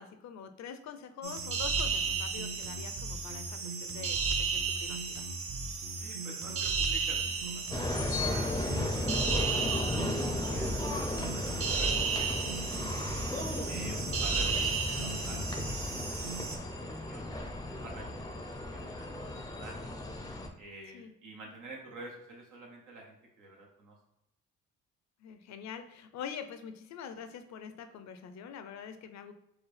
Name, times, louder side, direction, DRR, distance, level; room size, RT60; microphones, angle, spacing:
voice 1, 0.0-5.2 13.8-14.1 20.9-21.1 25.2-29.3, left 7 dB, 65° left, 9 dB, 0.5 m, -45 dB
sound 1, 1.2-16.6, right 5 dB, 50° right, 0.6 m, -34 dB
voice 2, 5.9-13.2 13.6-16.4 16.7-20.0 20.6-24.0, right 2 dB, 85° right, -1 dB, 1.2 m, -50 dB
sound 2, 7.7-20.5, left 2 dB, 15° left, 0.5 m, -35 dB
4.8 x 2.3 x 3.2 m, 0.85 s
cardioid pair, 90°, 30 cm